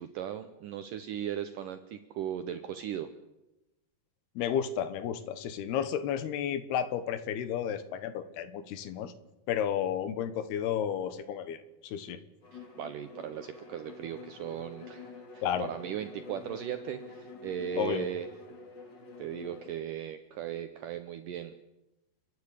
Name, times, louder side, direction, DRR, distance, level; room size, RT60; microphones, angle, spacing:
voice 1, 0.0-3.1 12.5-18.3 19.2-21.5, right 9 dB, 75° right, 9 dB, 2.0 m, -38 dB
voice 2, 4.4-9.1 9.5-12.2 15.4-15.7 17.7-18.0, left 9 dB, 75° left, 12 dB, 3.1 m, -32 dB
Bowed string instrument, 12.4-19.8, left 3 dB, 35° left, 2.1 m, -48 dB
30.0 x 10.5 x 8.5 m, 0.99 s
omnidirectional pair, 4.8 m